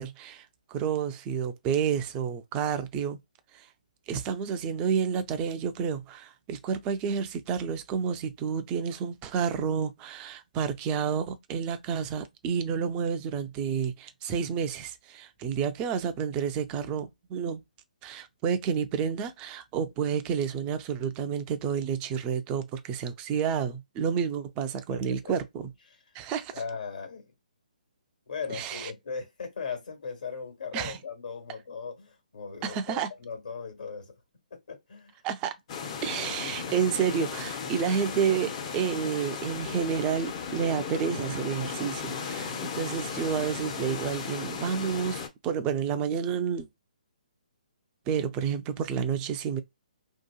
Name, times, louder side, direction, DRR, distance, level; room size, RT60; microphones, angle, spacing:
voice 1, 0.0-3.2 3.5-3.7 4.1-17.6 18.0-25.7 26.1-26.5 28.5-28.9 30.7-31.0 32.6-33.1 35.2-35.6 36.0-46.7 48.1-49.6, right 7 dB, 20° right, 0.4 m, -30 dB
voice 2, 24.9-25.3 25.9-26.0 26.5-27.2 28.3-34.1 34.7-35.1, left 5 dB, 70° left, 1.3 m, -38 dB
sound 1, 35.7-45.3, left 6 dB, 40° left, 0.6 m, -36 dB
2.8 x 2.3 x 2.2 m
figure-of-eight pair, 140°, 5 cm